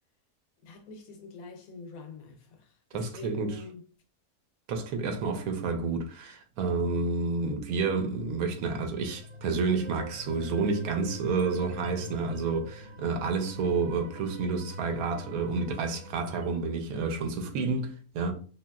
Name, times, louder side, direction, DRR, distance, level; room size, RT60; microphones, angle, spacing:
voice 1, 0.6-3.8 6.8-7.1, left 3 dB, 75° left, 1.1 m, -46 dB
voice 2, 2.9-3.6 4.7-18.3, right 4 dB, 85° right, 1.1 m, -30 dB
sound 1, 8.7-16.6, left 1 dB, 55° right, 0.9 m, -44 dB
2.8 x 2.7 x 2.3 m
omnidirectional pair, 1.5 m